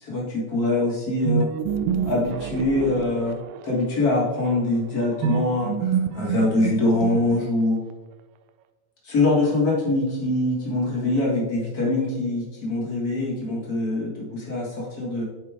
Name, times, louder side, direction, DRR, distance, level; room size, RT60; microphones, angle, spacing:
voice 1, 0.0-1.5 2.0-3.4 3.6-7.8 9.0-15.2, left 2 dB, 90° left, -4 dB, 0.8 m, -24 dB
sound 1, 1.2-3.8 5.2-7.7, right 7 dB, 85° right, 1.9 m, -27 dB
11.5 x 4.6 x 3.4 m, 1.1 s
omnidirectional pair, 4.3 m